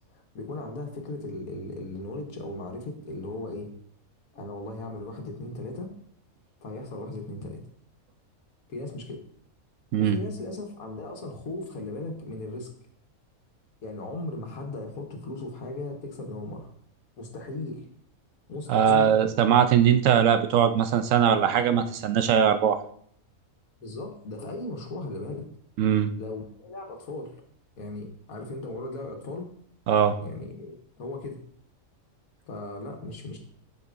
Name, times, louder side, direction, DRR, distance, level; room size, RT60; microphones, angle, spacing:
voice 1, 0.3-3.7 4.3-5.9 6.6-7.6 8.7-9.2 10.0-12.7 13.8-16.7 17.2-17.8 18.5-19.2 23.8-25.5 26.2-27.3 27.8-29.5 30.2-31.4 32.5-33.4, left 2 dB, 80° left, 2 dB, 1.7 m, -37 dB
voice 2, 18.7-22.8 25.8-26.1 29.9-30.2, right 8 dB, 70° right, 9 dB, 0.9 m, -21 dB
8.0 x 6.6 x 2.6 m, 0.62 s
omnidirectional pair, 1.5 m